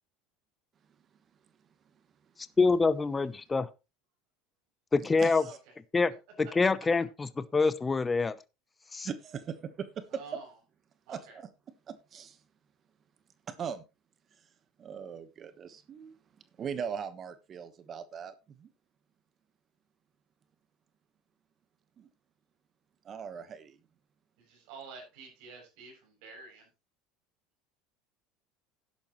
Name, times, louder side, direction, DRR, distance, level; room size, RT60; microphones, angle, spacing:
voice 1, 2.6-3.7 4.9-5.4 5.9-6.1 6.4-8.4 8.9-9.1, left 4 dB, 20° left, 0.7 m, -26 dB
voice 2, 5.2-5.6 9.0-10.0 11.1-11.5 11.9-12.4 13.5-13.8 14.8-16.1 16.6-18.7 22.0-22.1 23.0-23.8, right 7 dB, 40° right, 1.3 m, -40 dB
voice 3, 10.1-10.6 11.1-11.4 24.4-26.7, right 4 dB, 70° right, 7.3 m, -49 dB
12.0 x 10.5 x 3.1 m
hypercardioid pair, 85°, 0 cm